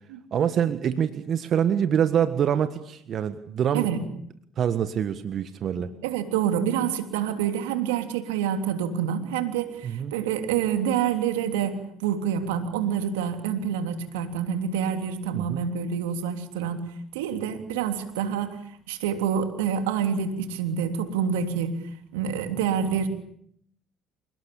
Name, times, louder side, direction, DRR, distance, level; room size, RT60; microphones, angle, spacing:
voice 1, 0.3-3.9 4.6-5.9 9.8-10.1 15.3-15.6, right 8 dB, 55° right, 11 dB, 1.6 m, -25 dB
voice 2, 5.8-16.9 17.1-18.6 18.9-21.8 22.1-23.1, right 8 dB, 85° right, 7 dB, 3.3 m, -27 dB
28.5 x 19.0 x 8.8 m, 0.67 s
hypercardioid pair, 65°, 0 cm